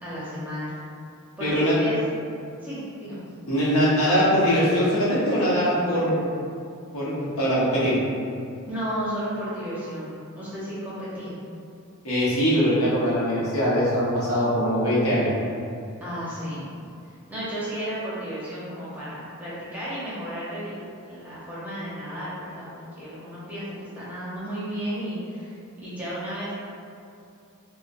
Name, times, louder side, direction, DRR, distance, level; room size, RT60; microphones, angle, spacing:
voice 1, 0.0-0.8 1.4-2.1 2.6-3.2 8.7-11.3 16.0-16.7 17.3-20.8 21.0-26.5, equal, 5° right, -10 dB, 0.7 m, -33 dB
voice 2, 1.4-1.7 3.5-6.3 6.9-8.0 12.0-15.3, equal, 75° left, -9 dB, 1.0 m, -22 dB
4.1 x 2.1 x 2.5 m, 2.5 s
head